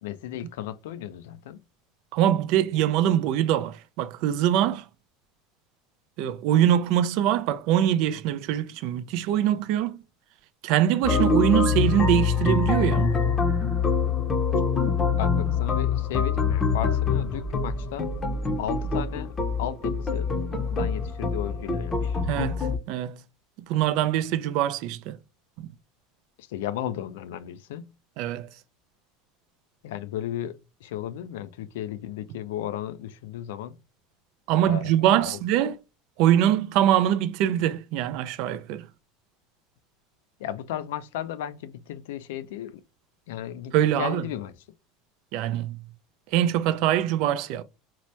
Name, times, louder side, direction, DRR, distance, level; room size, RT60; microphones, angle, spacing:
voice 1, 0.0-1.6 15.2-18.1 18.6-19.3 19.6-20.3 20.7-22.2 26.4-27.9 29.8-33.8 34.6-34.9 35.2-35.4 40.4-42.8 43.3-44.5, left 11 dB, 85° left, 0.3 m, -34 dB
voice 2, 2.1-4.8 6.2-10.0 10.6-13.1 20.5-20.6 22.3-23.2 23.7-25.2 25.6-25.7 28.2-28.5 34.5-35.8 36.2-38.9 43.7-44.2 45.3-45.8 46.3-47.6, right 11 dB, 65° right, 0.3 m, -23 dB
sound 1, 11.0-22.8, left 5 dB, 20° left, 0.6 m, -25 dB
2.8 x 2.1 x 3.0 m
supercardioid pair, 120°, 0 cm